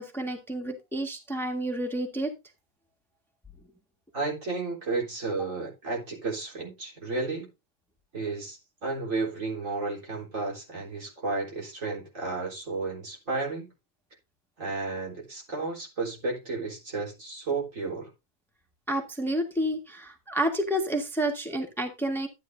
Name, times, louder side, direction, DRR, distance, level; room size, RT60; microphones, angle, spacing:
voice 1, 0.0-2.3 18.9-22.3, right 1 dB, ahead, 1.6 m, -30 dB
voice 2, 4.1-7.5 8.1-13.7 14.6-18.1, right 3 dB, 65° right, 4.3 m, -32 dB
13.0 x 9.4 x 2.7 m
omnidirectional pair, 1.5 m